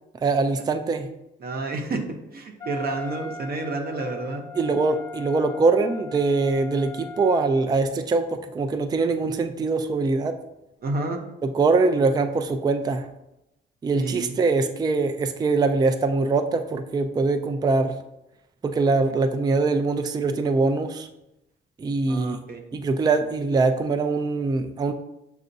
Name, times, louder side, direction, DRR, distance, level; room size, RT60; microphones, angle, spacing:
voice 1, 0.2-1.1 4.6-8.2 8.5-10.3 11.4-13.1 13.8-17.9 18.6-21.1 21.8-22.4 22.7-24.9, right 3 dB, 20° right, 7 dB, 0.3 m, -23 dB
voice 2, 1.4-2.0 2.3-4.4 10.8-11.2 13.9-14.3 22.1-22.6, right 2 dB, 50° right, 3 dB, 0.8 m, -30 dB
Wind instrument woodwind instrument, 2.6-7.9, left 2 dB, 20° left, 0.6 m, -39 dB
6.4 x 2.4 x 2.6 m, 0.88 s
cardioid pair, 90°, 20 cm